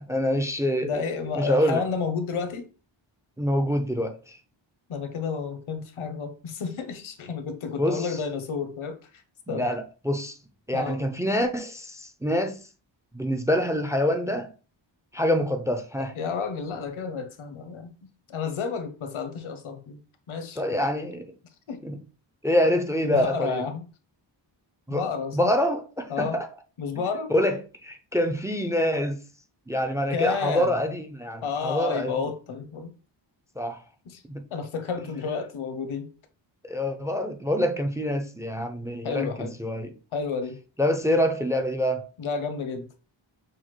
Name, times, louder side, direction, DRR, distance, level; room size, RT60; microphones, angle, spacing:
voice 1, 0.0-1.0 1.4-1.8 3.4-4.4 7.8-8.2 9.5-10.4 10.7-12.6 13.1-14.5 15.1-16.1 20.6-21.3 21.8-22.0 22.4-23.6 24.9-25.0 25.3-26.5 27.3-29.2 29.7-32.1 33.6-33.8 34.3-34.4 36.6-39.9 40.8-42.1, equal, 5° right, 0.4 m, -26 dB
voice 2, 0.8-2.7 4.9-9.2 9.5-9.7 10.7-11.0 16.2-20.0 20.3-20.8 21.7-21.8 23.0-23.8 24.9-25.5 26.1-26.4 26.8-27.3 30.1-30.8 31.4-32.9 34.1-34.2 34.5-36.1 39.0-39.5 40.1-40.6 42.2-42.9, left 5 dB, 85° left, 0.9 m, -31 dB
6.2 x 2.3 x 3.1 m
wide cardioid pair, 110°, 47 cm